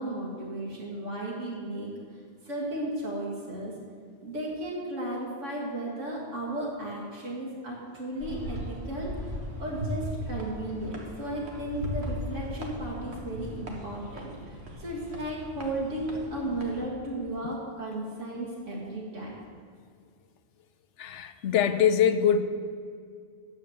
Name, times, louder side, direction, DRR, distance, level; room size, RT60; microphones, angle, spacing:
voice 1, 0.0-1.9 2.4-3.7 4.2-19.4, right 1 dB, 85° right, -4 dB, 2.0 m, -35 dB
sound 1, 8.2-16.9, equal, 60° right, 1.7 m, -38 dB
voice 2, 21.0-22.4, left 8 dB, 75° left, 10 dB, 0.9 m, -23 dB
9.4 x 7.0 x 7.9 m, 2.2 s
omnidirectional pair, 1.2 m